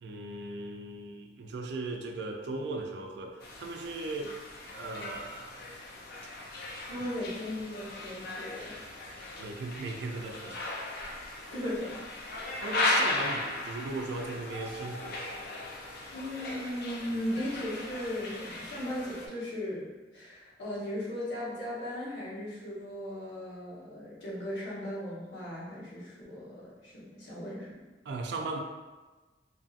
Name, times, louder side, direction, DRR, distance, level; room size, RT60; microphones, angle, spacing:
voice 1, 0.0-4.3 4.7-5.6 9.4-10.7 12.6-15.2 17.1-17.2 28.1-28.6, right 3 dB, 70° right, 3 dB, 0.4 m, -37 dB
sound 1, 3.4-19.3, left 2 dB, 60° left, 0.4 m, -37 dB
voice 2, 6.9-8.7 11.5-11.9 16.1-27.7, left 1 dB, 75° left, -8 dB, 1.0 m, -37 dB
2.6 x 2.6 x 2.4 m, 1.2 s
head